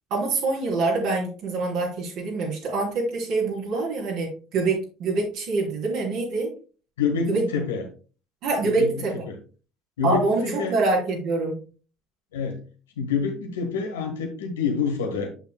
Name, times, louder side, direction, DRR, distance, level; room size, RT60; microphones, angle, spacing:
voice 1, 0.1-6.5 7.3-7.4 8.4-9.2 10.0-11.6, right 3 dB, 65° right, -2 dB, 3.3 m, -25 dB
voice 2, 7.0-7.8 8.6-8.9 9.3-9.4 10.0-10.7 12.3-12.6 13.0-15.3, left 5 dB, 85° left, 4 dB, 1.4 m, -27 dB
7.9 x 6.8 x 2.2 m, 0.37 s
hypercardioid pair, 65°, 0 cm